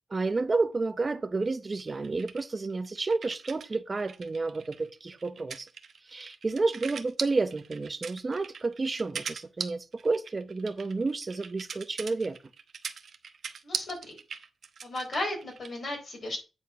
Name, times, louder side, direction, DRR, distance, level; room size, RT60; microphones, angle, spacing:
voice 1, 0.1-5.7 6.1-12.4, right 3 dB, 25° right, 0.8 m, -30 dB
sound 1, 1.8-3.7 4.0-15.8, right 6 dB, 55° right, 0.9 m, -40 dB
voice 2, 13.6-14.2 14.8-16.4, left 1 dB, 40° left, 4.2 m, -35 dB
9.2 x 4.5 x 5.6 m
wide cardioid pair, 160°, 0 cm